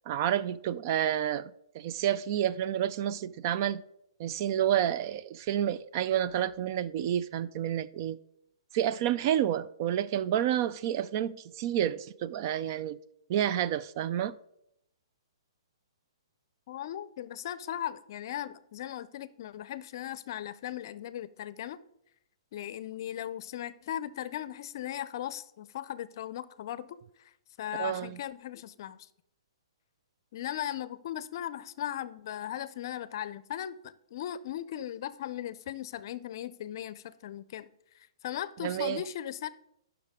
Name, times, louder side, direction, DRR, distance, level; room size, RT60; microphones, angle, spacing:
voice 1, 0.1-3.8 4.2-8.2 8.7-13.0 13.3-14.3 27.8-28.1 38.6-39.0, right 10 dB, 40° right, 0.4 m, -29 dB
voice 2, 16.7-21.8 22.5-27.0 27.6-29.1 30.3-37.7 37.9-39.5, left 11 dB, 50° left, 0.5 m, -38 dB
14.0 x 5.9 x 3.6 m
hypercardioid pair, 145°, 3 cm